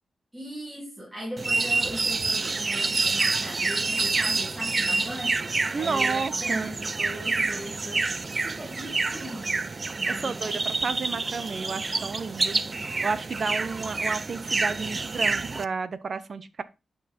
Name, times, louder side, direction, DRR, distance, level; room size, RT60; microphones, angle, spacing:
voice 1, 0.3-9.6 10.0-10.7, equal, 10° right, 3.5 m, -39 dB
sound 1, 1.4-15.6, right 3 dB, 35° right, 0.5 m, -28 dB
voice 2, 5.7-6.7 10.2-12.6 13.0-16.6, right 5 dB, 50° right, 1.0 m, -31 dB
11.0 x 5.0 x 4.4 m
wide cardioid pair, 95°, 0 cm